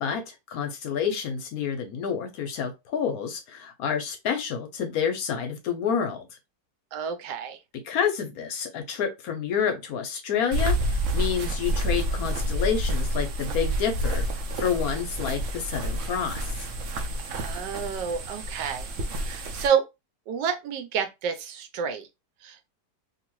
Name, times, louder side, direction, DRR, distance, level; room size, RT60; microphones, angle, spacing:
voice 1, 0.0-6.3 7.8-14.2 14.6-16.6, left 7 dB, 70° left, 1.0 m, -29 dB
voice 2, 6.9-7.6 17.3-18.9 19.2-19.8 20.3-22.1 22.4-22.7, right 7 dB, 85° right, 1.3 m, -29 dB
sound 1, 10.5-19.7, right 1 dB, 70° right, 0.7 m, -29 dB
2.8 x 2.6 x 3.0 m
omnidirectional pair, 1.8 m